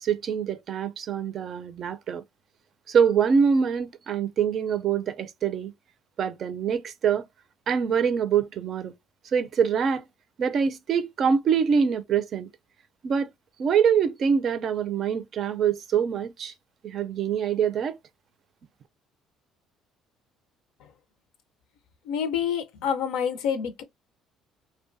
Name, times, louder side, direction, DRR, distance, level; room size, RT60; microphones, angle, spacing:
voice 1, 0.0-2.2 2.9-5.7 6.2-7.2 7.7-8.9 9.3-10.0 10.4-12.5 13.0-13.3 13.6-16.5 16.8-18.0, right 7 dB, 45° right, 0.4 m, -24 dB
voice 2, 22.1-23.8, left 8 dB, 85° left, 0.5 m, -27 dB
2.6 x 2.2 x 2.5 m
cardioid pair, 125°, 0 cm